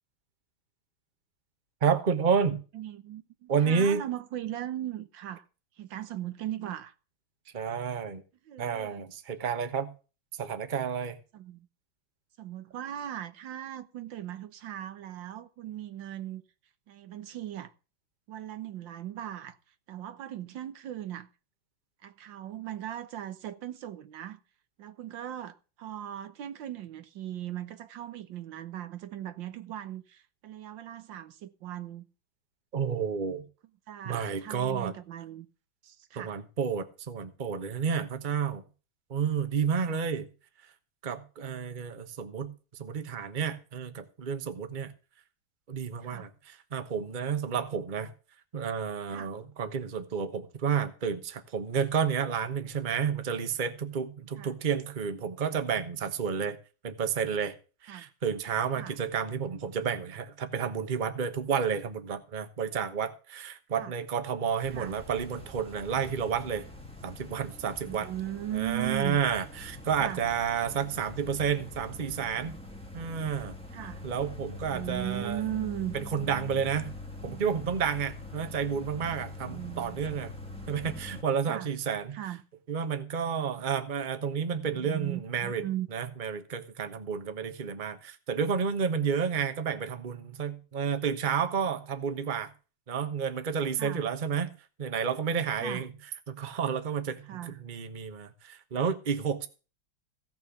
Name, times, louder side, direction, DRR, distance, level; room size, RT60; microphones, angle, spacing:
voice 1, 1.8-2.6 3.5-4.0 7.5-8.2 8.6-9.9 10.4-11.2 32.7-33.4 34.0-34.9 36.2-38.6 39.1-40.3 41.0-42.5 42.8-44.9 45.7-48.1 48.5-56.6 56.8-57.6 57.8-66.6 67.0-68.1 68.5-72.6 72.9-73.5 74.0-75.4 75.9-76.9 77.2-80.3 80.7-82.2 82.7-85.6 85.9-92.5 92.9-94.5 94.8-95.9 96.3-99.5, right 7 dB, 30° right, 1.1 m, -30 dB
voice 2, 2.7-5.4 5.8-6.9 8.5-9.1 11.3-11.7 12.4-16.4 16.9-17.7 18.3-19.6 19.9-21.3 22.0-24.4 24.8-32.1 33.9-35.5 36.1-36.4 39.9-40.0 46.0-46.3 49.1-49.3 54.4-54.6 57.9-58.1 58.7-59.0 63.7-63.9 64.7-64.9 67.8-69.2 70.0-70.2 73.7-74.0 74.7-75.9 79.4-80.0 81.5-81.7 82.1-82.4 84.7-85.9 93.8-94.1 95.6-95.9 97.3-97.6, right 12 dB, 75° right, 1.6 m, -38 dB
sound 1, 64.6-81.2, left 2 dB, 5° left, 1.4 m, -44 dB
16.0 x 6.1 x 7.1 m
omnidirectional pair, 2.1 m